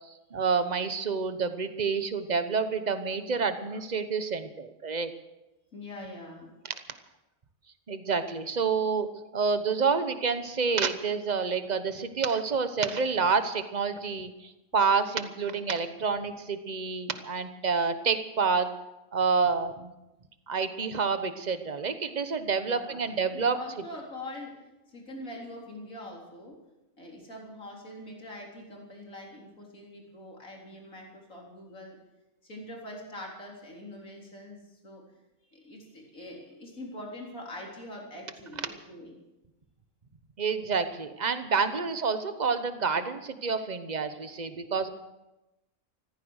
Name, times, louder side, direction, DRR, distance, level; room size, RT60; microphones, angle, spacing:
voice 1, 0.3-5.1 7.9-18.7 19.1-19.9 20.5-23.6 40.4-44.9, right 5 dB, 35° right, 9 dB, 1.1 m, -28 dB
voice 2, 5.7-6.5 22.5-26.6 27.0-32.0 32.4-35.0 35.5-39.1 41.7-41.8, left 1 dB, 90° left, -2 dB, 4.3 m, -43 dB
15.0 x 14.5 x 6.5 m, 0.99 s
omnidirectional pair, 1.4 m